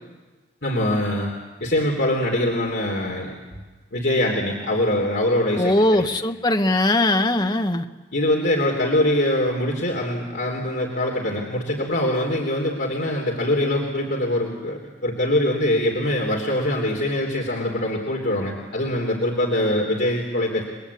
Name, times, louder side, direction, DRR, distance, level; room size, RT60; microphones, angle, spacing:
voice 1, 0.6-1.3 1.6-3.3 3.9-6.1 8.1-20.6, left 1 dB, 60° left, -1 dB, 3.5 m, -23 dB
voice 2, 5.6-7.8, left 1 dB, 20° left, 6 dB, 1.0 m, -20 dB
30.0 x 21.0 x 8.5 m, 1.3 s
head